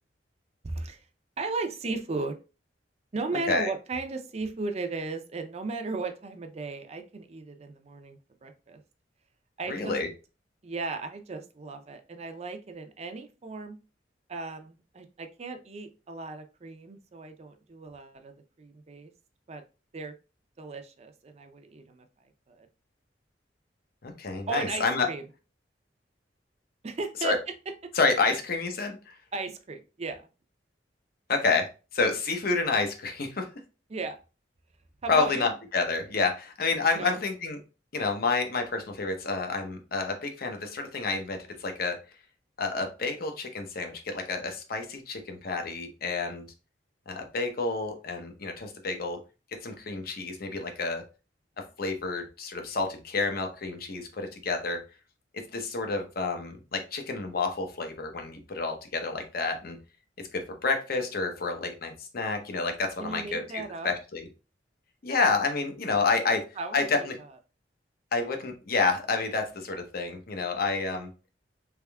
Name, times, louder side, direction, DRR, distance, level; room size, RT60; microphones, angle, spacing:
voice 1, 0.6-1.0 1.4-2.4 3.1-8.8 9.6-10.0 10.6-13.8 14.3-19.1 19.5-19.6 19.9-20.1 20.6-22.1 22.5-22.7 24.5-25.2 26.8-27.3 29.3-30.3 33.9-34.2 35.0-35.5 36.9-37.2 63.0-63.9 66.3-67.1, right 3 dB, 35° right, 7 dB, 0.5 m, -36 dB
voice 2, 9.7-10.1 24.0-25.1 27.2-27.4 27.9-29.2 31.3-33.5 35.1-37.6 37.9-42.0 42.6-46.5 47.1-49.2 49.6-51.0 51.8-54.8 55.3-59.8 60.2-64.3 65.0-66.4 66.7-67.2 68.1-71.1, left 4 dB, 55° left, 4 dB, 0.7 m, -29 dB
3.5 x 3.4 x 2.2 m, 0.32 s
head